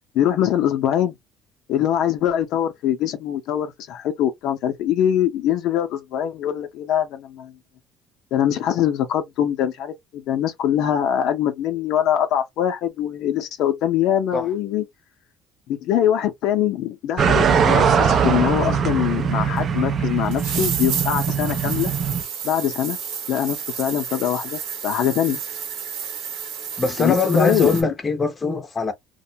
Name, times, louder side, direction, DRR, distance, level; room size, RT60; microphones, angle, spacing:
voice 1, 0.1-1.1 1.7-7.5 8.3-14.8 15.7-21.9 22.4-23.0 23.3-25.4 27.0-27.9, left 10 dB, 65° left, 0.5 m, -23 dB
sound 1, 17.2-22.2, right 6 dB, 40° right, 0.4 m, -21 dB
sound 2, 19.6-19.7 20.3-27.8, right 7 dB, 80° right, 0.9 m, -31 dB
voice 2, 26.8-28.9, left 3 dB, 20° left, 0.6 m, -21 dB
2.3 x 2.1 x 2.7 m
cardioid pair, 150°, 0 cm